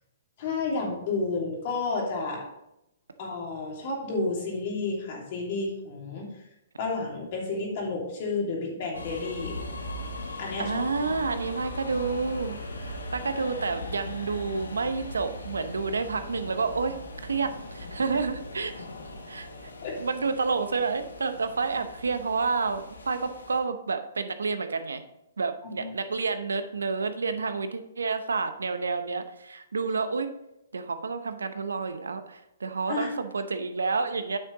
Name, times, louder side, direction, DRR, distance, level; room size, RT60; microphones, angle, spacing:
voice 1, 0.4-2.5 3.2-6.2 6.8-9.6 10.4-11.1 18.1-18.2 19.8-20.0 25.7-25.9 32.9-33.1, left 3 dB, 50° left, -1 dB, 2.9 m, -31 dB
sound 1, 8.9-23.6, left 2 dB, 85° left, 1.3 m, -39 dB
voice 2, 10.6-18.9 19.3-19.5 20.0-25.0 25.4-30.3 30.7-34.4, right 4 dB, 80° right, 10 dB, 0.8 m, -29 dB
9.1 x 6.1 x 4.0 m, 0.84 s
hypercardioid pair, 130°, 0 cm